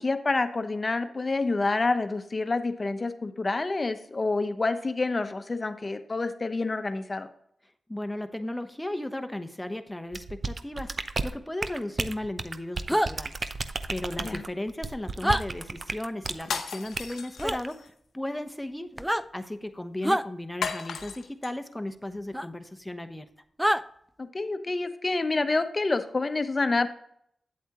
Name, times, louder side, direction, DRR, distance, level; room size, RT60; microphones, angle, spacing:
voice 1, 0.0-7.3 14.2-14.4 24.2-26.9, left 3 dB, 40° left, 9 dB, 0.9 m, -28 dB
voice 2, 7.9-13.4 13.9-18.9 19.3-23.3, left 1 dB, 10° left, 8 dB, 0.9 m, -36 dB
sound 1, 10.1-16.5 16.9-17.1 17.5-17.7, right 3 dB, 50° right, 0.6 m, -33 dB
sound 2, 12.9-13.1 15.2-15.4 17.4-17.6 18.9-19.2 20.0-20.3 22.3-22.5 23.6-23.8, equal, 5° right, 0.4 m, -25 dB
sound 3, 16.4-17.9 20.6-21.5, left 6 dB, 90° left, 0.9 m, -35 dB
8.5 x 8.1 x 3.0 m, 0.69 s
cardioid pair, 50°, 0 cm